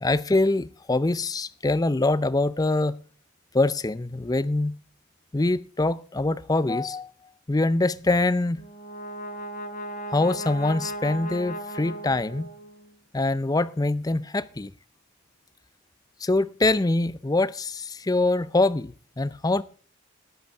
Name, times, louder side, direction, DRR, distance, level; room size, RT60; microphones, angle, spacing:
voice 1, 0.0-3.0 3.5-4.7 5.3-7.1 7.5-8.6 10.1-12.5 13.1-14.7 16.2-19.6, left 2 dB, 20° left, 0.5 m, -24 dB
Brass instrument, 8.5-12.9, right 1 dB, 40° left, 1.4 m, -36 dB
20.0 x 8.1 x 3.5 m
head